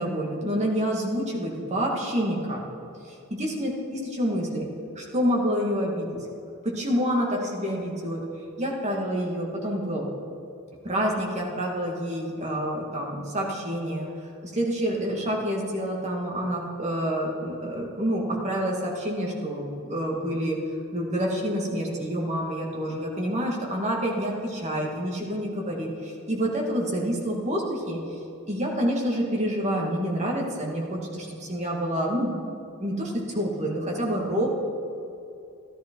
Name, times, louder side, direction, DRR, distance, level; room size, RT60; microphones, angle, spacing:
voice 1, 0.0-2.6 3.3-4.7 5.0-6.2 6.6-8.2 8.6-10.1 10.8-14.1 14.4-20.6 20.9-28.2 28.5-32.3 32.8-34.5, equal, 30° right, -1 dB, 1.8 m, -28 dB
13.5 x 11.5 x 4.5 m, 2.7 s
head